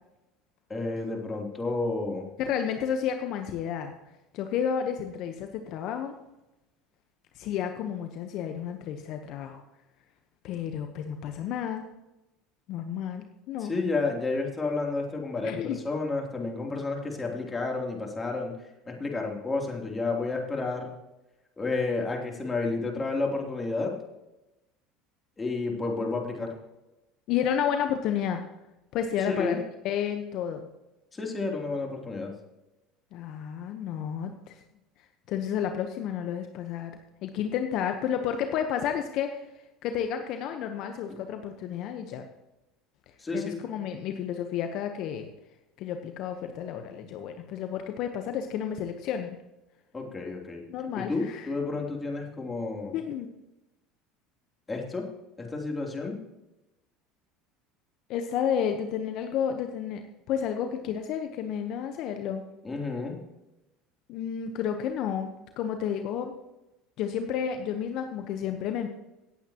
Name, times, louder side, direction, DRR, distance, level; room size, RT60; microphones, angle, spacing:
voice 1, 0.7-2.3 13.7-18.5 18.9-20.9 21.6-23.9 25.4-26.5 29.3-29.6 31.1-32.3 43.2-43.6 49.9-50.6 50.9-53.0 54.7-55.1 55.4-56.2 62.6-63.2, left 3 dB, 20° left, 0 dB, 3.2 m, -31 dB
voice 2, 2.4-4.0 4.3-6.2 7.3-9.6 10.4-11.8 12.7-13.7 15.4-15.8 27.3-28.4 28.9-30.7 33.1-34.6 35.3-39.4 39.8-42.3 43.3-45.3 45.8-49.4 50.7-51.5 52.9-53.3 58.1-60.0 60.3-62.4 64.1-65.3 65.6-66.3 67.0-68.9, left 8 dB, 60° left, 6 dB, 1.0 m, -31 dB
17.5 x 8.5 x 3.0 m, 0.97 s
supercardioid pair, 90°, 0 cm